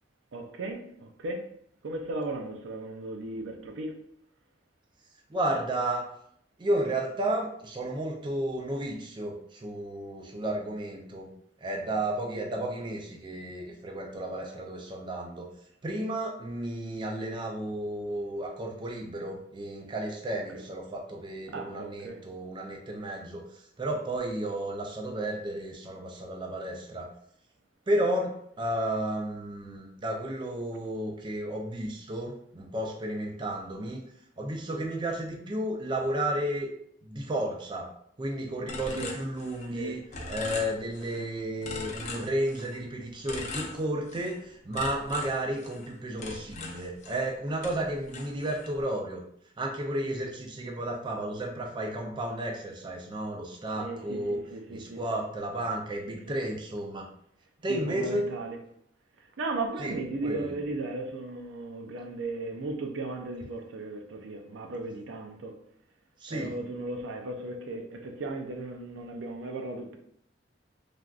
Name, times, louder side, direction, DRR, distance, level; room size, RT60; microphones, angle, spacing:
voice 1, 0.3-1.4 1.8-3.9 21.5-22.2 39.0-39.1 39.7-40.0 41.1-41.3 53.8-55.2 56.1-56.3 57.7-58.6 59.4-65.5 66.3-70.0, right 2 dB, 90° right, 0.5 m, -36 dB
voice 2, 5.3-6.1 6.6-11.3 11.6-15.5 15.8-27.1 27.9-34.0 34.4-36.7 37.0-37.9 38.2-49.2 49.6-54.4 54.7-57.1 57.6-58.3 59.8-59.9 60.2-60.5 66.2-66.5, right 1 dB, 25° right, 0.4 m, -32 dB
sound 1, 38.7-39.8 40.1-41.2 41.6-42.8 43.3-44.4 44.7-47.3 47.6-48.8, left 3 dB, 40° left, 0.5 m, -40 dB
3.3 x 2.5 x 2.3 m
head